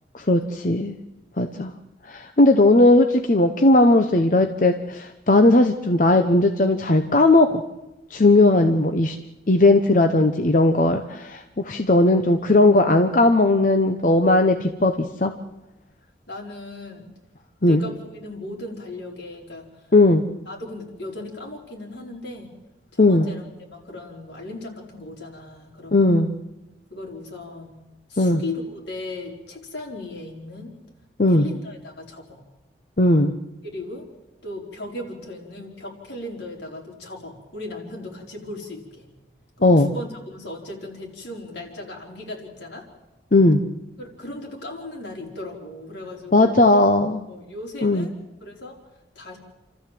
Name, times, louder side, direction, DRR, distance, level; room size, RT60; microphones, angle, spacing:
voice 1, 0.1-1.0 1.4-1.7 2.1-7.6 8.1-9.2 9.5-15.3 17.6-17.8 19.9-20.2 23.0-23.3 25.9-26.3 28.2-28.4 31.2-31.5 33.0-33.3 39.6-39.9 43.3-43.6 46.3-47.2 47.8-48.1, left 2 dB, 45° left, 6 dB, 0.9 m, -17 dB
voice 2, 16.3-17.1 17.6-19.9 20.5-22.5 22.9-23.4 23.7-26.3 26.9-27.8 28.1-30.8 31.3-32.4 33.6-34.1 34.4-39.1 39.6-42.9 44.0-46.6 47.3-48.1 48.4-48.8 49.1-49.4, left 2 dB, 80° left, -1 dB, 4.9 m, -37 dB
29.0 x 13.5 x 7.7 m, 1.0 s
head